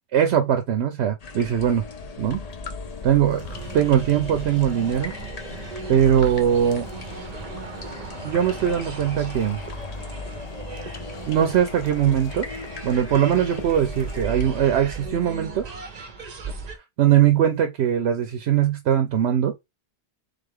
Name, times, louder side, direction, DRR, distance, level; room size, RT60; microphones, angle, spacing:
voice 1, 0.1-1.8 2.2-2.4 3.0-3.4 3.7-5.1 5.9-6.9 8.2-9.6 11.3-12.5 12.8-15.6 17.0-19.5, right 9 dB, 80° right, 0.9 m, -21 dB
sound 1, 1.2-14.7, left 4 dB, 45° left, 0.7 m, -37 dB
Walking alongside eastern parkway, 3.4-16.8, right 5 dB, 45° right, 0.8 m, -37 dB
3.6 x 3.3 x 3.6 m
omnidirectional pair, 1.1 m